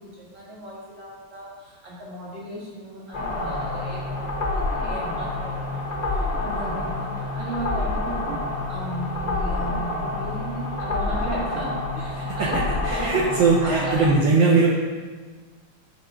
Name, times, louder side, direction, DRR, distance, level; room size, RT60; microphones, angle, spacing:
voice 1, 0.0-8.4 8.7-13.2 13.6-14.0 14.4-14.5, right 1 dB, 30° right, -6 dB, 2.0 m, -35 dB
sound 1, 3.1-14.1, left 2 dB, 55° left, 0.4 m, -28 dB
voice 2, 12.8-14.8, right 4 dB, 70° right, -4 dB, 1.5 m, -19 dB
6.0 x 4.3 x 5.6 m, 1.4 s
omnidirectional pair, 2.3 m